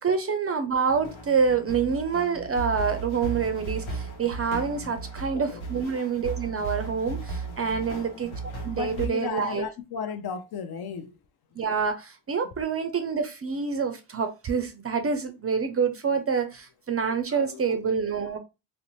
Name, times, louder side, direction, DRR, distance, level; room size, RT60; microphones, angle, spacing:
voice 1, 0.0-8.3 8.6-9.7 11.6-18.4, right 6 dB, 30° right, 0.4 m, -27 dB
sound 1, 0.9-9.1, right 3 dB, 80° left, 0.9 m, -36 dB
voice 2, 8.7-11.1 17.3-17.6, left 6 dB, 55° left, 0.6 m, -35 dB
2.5 x 2.1 x 2.9 m
supercardioid pair, 55°, 47 cm